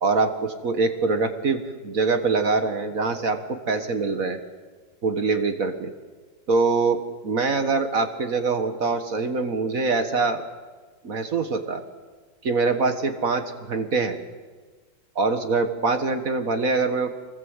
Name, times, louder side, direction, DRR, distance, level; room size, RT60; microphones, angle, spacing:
voice 1, 0.0-4.4 5.0-5.9 6.5-10.4 11.0-11.8 12.4-14.2 15.2-17.1, right 4 dB, 50° right, 7 dB, 1.8 m, -24 dB
25.5 x 20.5 x 8.1 m, 1.4 s
omnidirectional pair, 2.0 m